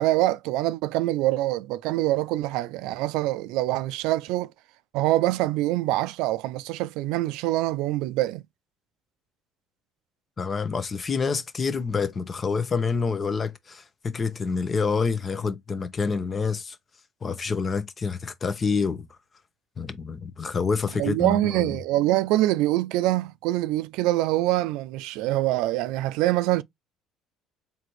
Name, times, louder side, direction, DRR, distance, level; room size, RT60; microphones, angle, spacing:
voice 1, 0.0-4.5 4.9-8.4 21.0-26.6, right 16 dB, 80° right, 0.3 m, -24 dB
voice 2, 10.4-16.8 17.2-19.0 19.8-21.7, left 5 dB, 30° left, 0.8 m, -27 dB
4.0 x 2.8 x 3.1 m
cardioid pair, 110°, 0 cm